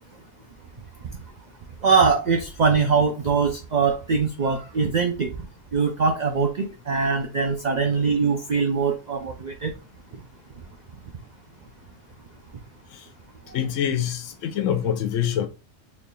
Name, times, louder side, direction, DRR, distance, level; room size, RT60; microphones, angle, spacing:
voice 1, 1.8-5.3 5.7-9.7, right 5 dB, 85° right, 0.4 m, -22 dB
voice 2, 13.5-15.5, left 9 dB, 75° left, 1.0 m, -25 dB
4.0 x 3.3 x 2.2 m
omnidirectional pair, 1.3 m